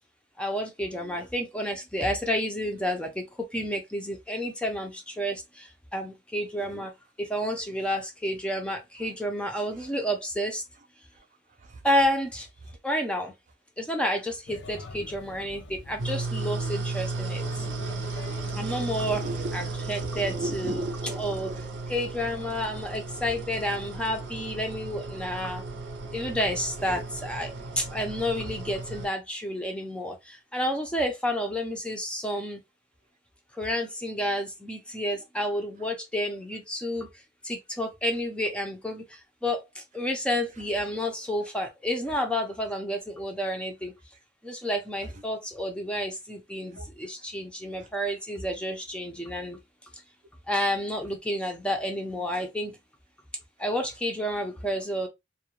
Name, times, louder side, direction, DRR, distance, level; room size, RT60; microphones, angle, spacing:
voice 1, 0.4-3.3 3.5-6.9 7.2-10.6 11.8-12.5 12.8-13.3 13.8-17.6 18.5-19.3 19.5-20.8 21.2-21.5 21.9-25.6 26.1-32.6 33.5-43.9 44.4-49.6 50.5-52.8 53.6-55.1, equal, 5° left, 0.5 m, -30 dB
voice 2, 0.9-1.3 6.6-6.9 9.0-9.1 9.7-9.9 10.8-10.9 11.1-11.8 12.7-12.8 17.7-17.8 18.4-19.7 20.1-21.7 26.8-27.0 35.8-35.9 40.5-40.8 42.1-42.2 45.0-45.2 46.7-46.9 47.7-47.9, right 2 dB, 45° right, 0.5 m, -39 dB
Male speech man speaking / Child speech kid speaking / Chatter, 14.4-20.4, left 2 dB, 75° left, 0.5 m, -45 dB
sound 1, 16.0-29.1, right 3 dB, 85° right, 0.6 m, -35 dB
2.3 x 2.1 x 2.9 m
head